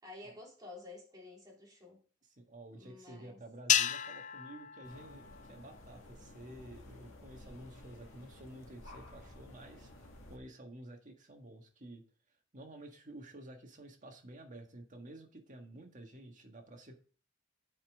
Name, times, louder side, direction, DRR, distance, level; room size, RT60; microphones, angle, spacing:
voice 1, 0.0-2.0 2.7-3.4, left 2 dB, 20° right, 3.1 m, -51 dB
voice 2, 2.4-12.0 12.5-17.0, right 1 dB, 40° right, 1.7 m, -51 dB
sound 1, 3.7-6.1, left 10 dB, 40° left, 0.4 m, -33 dB
sound 2, 4.8-10.4, left 1 dB, 75° left, 1.8 m, -54 dB
8.7 x 5.3 x 3.6 m
head